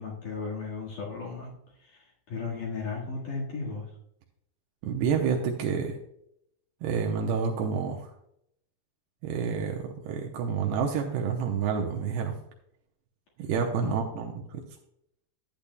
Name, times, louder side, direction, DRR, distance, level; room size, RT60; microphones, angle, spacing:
voice 1, 0.0-1.5 1.8-3.9 13.8-13.9, left 4 dB, 55° left, -4 dB, 2.9 m, -35 dB
voice 2, 4.8-6.0 6.8-8.1 9.2-12.3 13.4-14.6, right 6 dB, 80° right, 2 dB, 2.7 m, -29 dB
12.0 x 8.6 x 2.2 m, 0.75 s
omnidirectional pair, 5.0 m